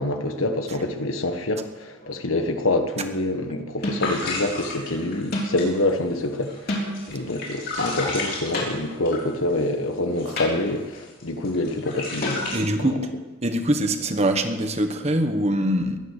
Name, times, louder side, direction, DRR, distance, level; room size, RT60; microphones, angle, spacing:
voice 1, 0.0-6.8 7.1-12.9, left 2 dB, 80° left, 1.4 m, -26 dB
sound 1, 2.0-2.4 3.8-4.2 5.3-5.7 6.7-7.2 8.5-9.1 10.4-10.8 12.2-12.9, left 1 dB, 50° left, 4.0 m, -31 dB
sound 2, 4.0-9.7 10.1-10.3 10.7-12.6, left 3 dB, 65° left, 6.7 m, -32 dB
voice 2, 12.5-13.1 13.4-16.0, right 1 dB, 30° right, 1.3 m, -23 dB
22.0 x 9.7 x 6.6 m
head